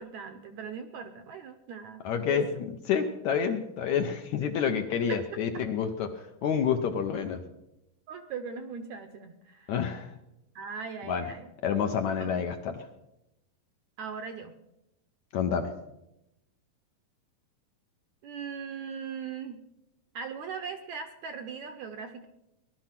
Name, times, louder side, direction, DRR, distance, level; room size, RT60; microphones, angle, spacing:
voice 1, 0.0-2.6 4.4-4.5 5.1-5.2 8.1-9.7 10.6-11.5 12.2-12.3 14.0-14.5 18.2-19.6 20.1-22.3, right 6 dB, 70° right, 8 dB, 1.8 m, -39 dB
voice 2, 2.0-2.5 2.9-7.4 9.7-10.1 11.1-11.3 11.6-12.9 15.3-15.7, left 7 dB, 70° left, 6 dB, 1.8 m, -28 dB
19.0 x 12.0 x 5.9 m, 0.89 s
omnidirectional pair, 4.1 m